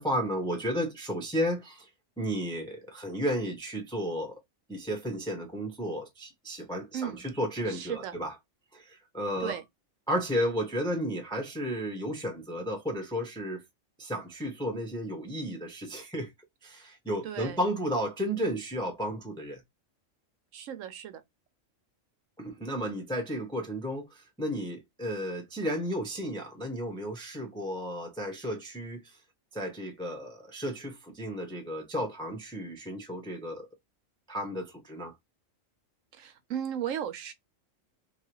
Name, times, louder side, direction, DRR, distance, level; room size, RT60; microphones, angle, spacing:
voice 1, 0.0-1.9 2.2-4.4 4.7-8.3 8.7-9.6 10.1-13.6 14.0-16.3 16.6-19.6 22.4-29.0 29.5-33.7 34.3-35.1, equal, 5° left, 0.4 m, -33 dB
voice 2, 6.9-7.3 7.7-8.2 9.4-9.6 17.2-17.6 20.5-21.2 36.1-37.3, right 9 dB, 80° right, 1.0 m, -35 dB
2.8 x 2.3 x 2.9 m
omnidirectional pair, 1.3 m